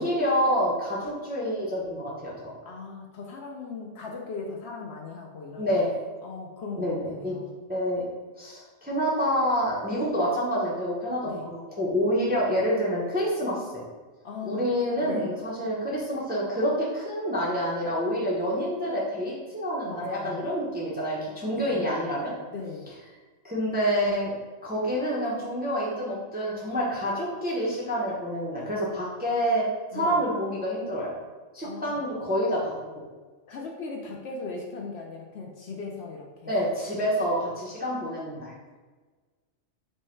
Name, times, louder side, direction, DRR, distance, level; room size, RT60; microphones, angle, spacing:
voice 1, 0.0-2.5 5.6-5.9 6.8-7.4 7.7-8.1 8.4-13.7 14.4-22.3 23.4-24.3 24.6-29.7 29.9-31.1 31.5-32.7 36.5-38.5, equal, 10° right, -5 dB, 0.5 m, -27 dB
voice 2, 2.6-5.8 6.2-7.5 11.2-11.5 14.2-14.7 15.0-15.3 19.8-20.4 21.4-21.9 22.5-22.9 29.9-30.2 31.6-32.0 33.5-36.5, left 4 dB, 65° left, 0 dB, 0.7 m, -38 dB
4.6 x 2.1 x 4.3 m, 1.4 s
omnidirectional pair, 1.4 m